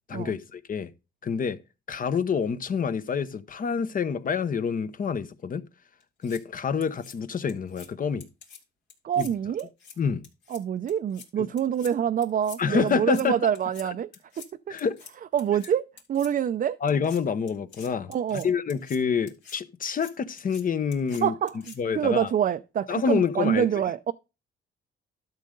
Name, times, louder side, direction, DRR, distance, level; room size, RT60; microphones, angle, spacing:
voice 1, 0.1-0.9 1.2-1.6 1.9-5.6 6.2-8.3 9.2-9.3 10.0-10.2 11.4-11.5 12.6-13.4 14.7-15.0 16.8-21.3 21.8-22.3 22.9-23.7, left 6 dB, 45° left, 0.9 m, -27 dB
sound 1, 6.0-6.4 6.8-7.1 7.5-7.9 8.2-8.6 8.9-9.3 9.6-9.9 10.2-10.6 10.9-11.3 11.6-11.9 12.2-12.6 12.9-13.2 13.5-13.8 14.1-14.5 14.8-15.1 15.4-15.7 16.0-16.3 16.9-17.2 17.5-19.0 19.3-19.6 19.8-20.1 20.4-20.6 20.9-21.2 21.5-21.8, left 6 dB, 70° left, 3.3 m, -46 dB
voice 2, 9.0-9.7 10.5-14.1 15.3-16.8 18.1-18.5 21.2-24.1, right 9 dB, 45° right, 0.5 m, -26 dB
12.0 x 6.5 x 3.8 m
cardioid pair, 90°, 20 cm